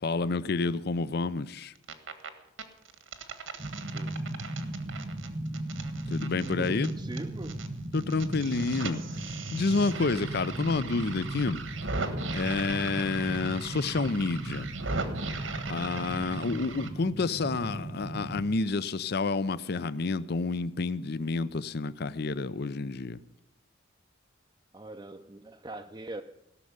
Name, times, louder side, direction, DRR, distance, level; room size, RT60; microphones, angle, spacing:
voice 1, 0.0-1.7 6.1-6.9 7.9-11.6 12.3-14.7 15.7-23.2, left 3 dB, 55° left, 16 dB, 0.5 m, -29 dB
sound 1, 1.6-2.3 2.6-7.7 7.9-16.9, right 3 dB, 80° right, 1.6 m, -39 dB
sound 2, 3.6-18.4, right 1 dB, 40° right, 0.9 m, -37 dB
voice 2, 6.5-7.6 24.7-26.2, right 2 dB, 20° right, 3 dB, 0.5 m, -42 dB
17.0 x 6.5 x 9.5 m, 0.83 s
head